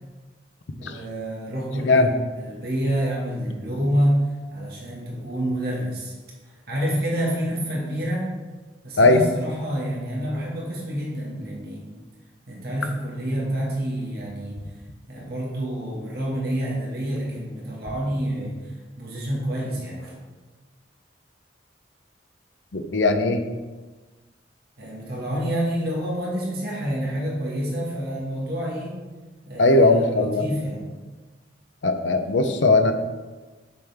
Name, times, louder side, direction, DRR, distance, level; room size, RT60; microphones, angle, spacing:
voice 1, 0.8-2.0 2.4-6.1 6.7-8.3 8.8-11.9 12.5-14.6 15.1-18.6 19.0-20.2 24.8-28.9 29.5-30.8, equal, 55° right, -4 dB, 1.8 m, -28 dB
voice 2, 22.7-23.4 29.6-30.5 31.8-32.9, left 2 dB, 80° left, 7 dB, 0.7 m, -18 dB
6.9 x 6.3 x 3.5 m, 1.3 s
head